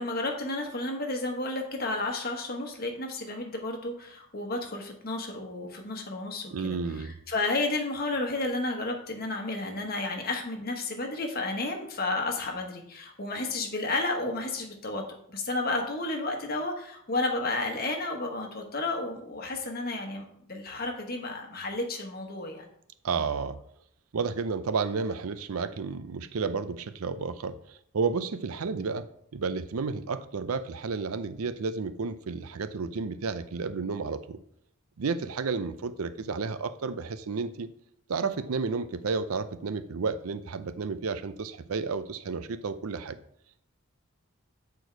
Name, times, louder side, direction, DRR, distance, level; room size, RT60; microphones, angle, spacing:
voice 1, 0.0-6.8 7.3-15.0 15.3-22.6, left 2 dB, 45° left, 2 dB, 1.3 m, -32 dB
voice 2, 6.5-7.2 23.0-23.6 24.1-34.4 35.0-37.7 38.1-43.2, right 4 dB, 85° right, 13 dB, 0.6 m, -32 dB
8.1 x 4.6 x 4.6 m, 0.69 s
head